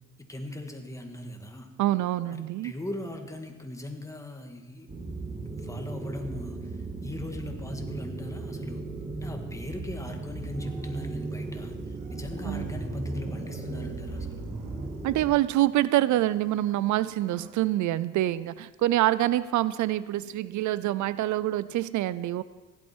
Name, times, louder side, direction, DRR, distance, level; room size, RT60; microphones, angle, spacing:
voice 1, 0.3-1.7 2.3-4.9 5.6-8.8 9.2-14.4, left 1 dB, 10° left, 4 dB, 1.7 m, -40 dB
voice 2, 1.8-2.7 12.4-12.7 15.0-22.4, right 14 dB, 75° right, 17 dB, 0.5 m, -26 dB
sound 1, 4.9-15.2, right 2 dB, 20° right, 1.9 m, -36 dB
sound 2, 10.4-17.5, right 7 dB, 90° right, 1.3 m, -48 dB
15.5 x 11.5 x 4.5 m, 1.3 s
cardioid pair, 90°, 30 cm